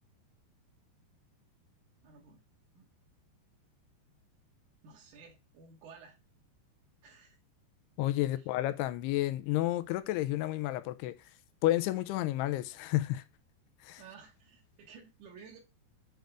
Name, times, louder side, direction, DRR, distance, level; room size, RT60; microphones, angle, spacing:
voice 1, 2.0-2.4 2.7-2.9 4.8-6.2 7.0-7.4 8.3-8.5 13.9-15.6, right 5 dB, 65° right, 2.3 m, -54 dB
voice 2, 8.0-11.2 11.6-13.2 13.8-14.0, left 15 dB, 85° left, 2.6 m, -31 dB
7.9 x 3.5 x 5.1 m
omnidirectional pair, 4.8 m